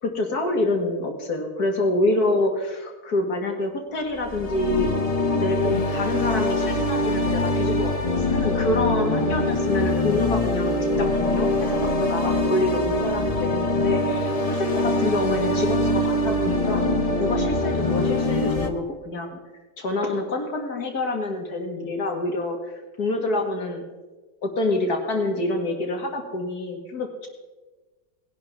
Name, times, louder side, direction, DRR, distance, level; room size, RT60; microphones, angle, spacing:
voice 1, 0.0-4.9 5.3-16.8 17.2-19.4 19.8-23.9 24.4-27.3, left 2 dB, 55° left, 3 dB, 2.3 m, -27 dB
sound 1, 4.1-18.7, left 2 dB, 25° left, 0.9 m, -23 dB
19.5 x 11.0 x 3.6 m, 1.2 s
omnidirectional pair, 2.0 m